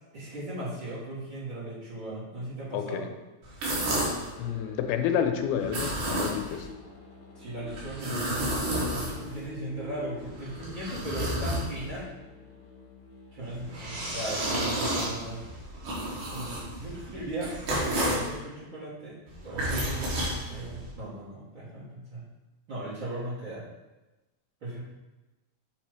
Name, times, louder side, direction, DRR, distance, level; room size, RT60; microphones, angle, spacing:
voice 1, 0.1-3.1 7.3-12.0 13.3-15.4 16.3-17.5 17.8-19.2 19.4-22.2 22.7-23.6 24.6-24.8, right 1 dB, 40° right, -11 dB, 2.0 m, -37 dB
voice 2, 2.7-3.1 4.4-6.7, left 8 dB, 90° left, 6 dB, 2.6 m, -29 dB
sound 1, 3.4-4.3 5.6-6.7 7.7-9.5 10.2-12.0 13.4-18.3 19.3-20.9, right 1 dB, 70° right, 3.5 m, -31 dB
Musical instrument, 4.3-15.9, left 4 dB, 50° left, 1.1 m, -48 dB
8.7 x 3.0 x 4.7 m, 1.1 s
omnidirectional pair, 4.3 m